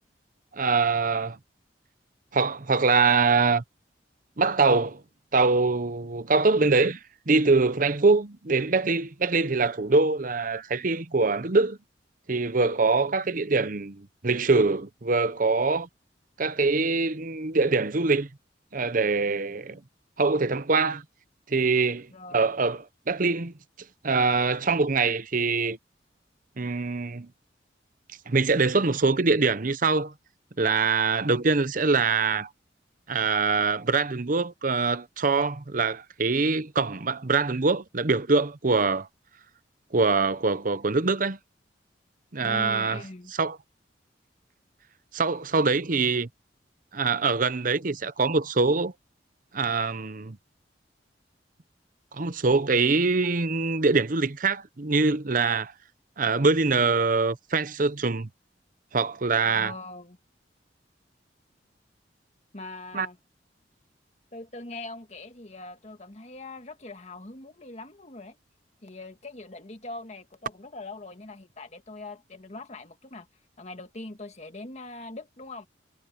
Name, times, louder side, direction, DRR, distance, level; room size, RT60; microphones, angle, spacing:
voice 1, 0.5-1.4 2.3-3.6 4.4-5.0 5.3-7.0 7.3-11.8 12.3-15.9 16.4-18.3 18.7-19.8 20.2-21.0 21.5-23.5 24.0-25.8 26.6-27.3 28.3-30.1 30.6-32.5 33.1-39.1 39.9-41.4 42.3-43.0 43.4-43.6 45.1-46.3 46.9-48.9 49.5-50.4 52.1-55.7 56.2-58.3 58.9-59.7 62.9-63.1, right 4 dB, 50° right, 0.9 m, -24 dB
voice 2, 22.1-22.7 42.4-43.3 59.4-60.2 62.5-63.2 64.3-68.4 68.8-73.3 73.6-75.7, left 2 dB, 40° left, 1.8 m, -42 dB
head